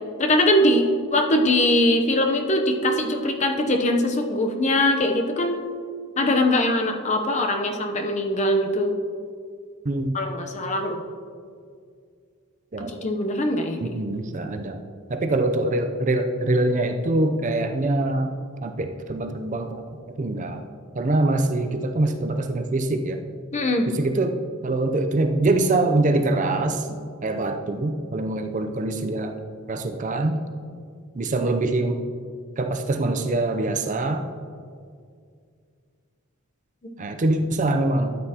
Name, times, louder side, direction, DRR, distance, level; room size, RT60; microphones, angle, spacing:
voice 1, 0.2-5.6 6.2-9.0 10.1-11.0 13.0-14.0 23.5-23.9, left 1 dB, 35° left, 4 dB, 0.8 m, -22 dB
voice 2, 9.8-10.2 12.7-12.9 13.8-14.8 15.1-18.3 18.6-19.8 20.2-20.6 20.9-23.2 23.9-24.4 24.6-29.3 29.7-30.4 31.1-32.0 32.6-34.2 37.0-38.2, right 2 dB, 35° right, 6 dB, 0.5 m, -24 dB
13.0 x 8.7 x 2.9 m, 2.2 s
head